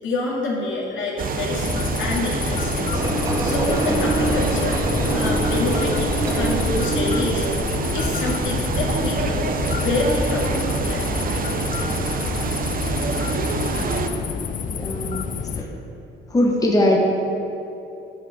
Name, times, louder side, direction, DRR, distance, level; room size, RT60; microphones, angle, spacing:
voice 1, 0.0-3.0 3.4-4.8 5.1-7.6 7.9-9.5 9.8-11.1, left 2 dB, 75° left, -4 dB, 2.4 m, -27 dB
sound 1, 1.2-14.1, right 3 dB, 45° right, 0.8 m, -25 dB
sound 2, 1.6-15.6, left 6 dB, 40° left, 0.4 m, -29 dB
Engine, 2.9-8.4, equal, 15° right, 1.8 m, -27 dB
voice 2, 14.7-15.8 16.3-17.0, left 1 dB, 20° left, -1 dB, 1.3 m, -22 dB
10.0 x 4.9 x 7.4 m, 2.9 s
cardioid pair, 90°, 20 cm